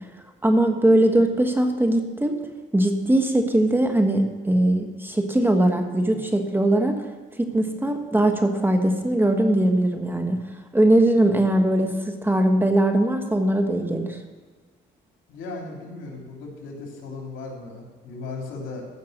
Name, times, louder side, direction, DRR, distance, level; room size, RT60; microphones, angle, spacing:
voice 1, 0.4-2.4 2.7-7.0 7.4-10.4 10.7-14.2, right 1 dB, 10° right, 5 dB, 1.4 m, -20 dB
voice 2, 15.3-18.9, left 3 dB, 80° left, 0 dB, 3.0 m, -36 dB
15.0 x 5.7 x 6.6 m, 1.5 s
cardioid pair, 90°, 20 cm